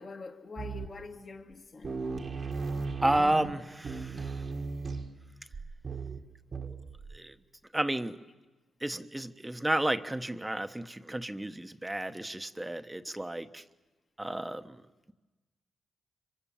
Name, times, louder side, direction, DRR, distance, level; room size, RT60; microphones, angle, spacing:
voice 1, 0.0-2.1, left 3 dB, 50° left, 2.0 m, -45 dB
sound 1, 0.6-1.2 1.5-1.6 1.8-7.2, right 4 dB, 55° right, 1.8 m, -37 dB
voice 2, 3.0-4.4 7.1-7.3 7.7-8.2 8.8-13.6 14.2-14.8, right 1 dB, 15° right, 1.2 m, -32 dB
25.5 x 23.5 x 7.3 m
supercardioid pair, 50°, 0 cm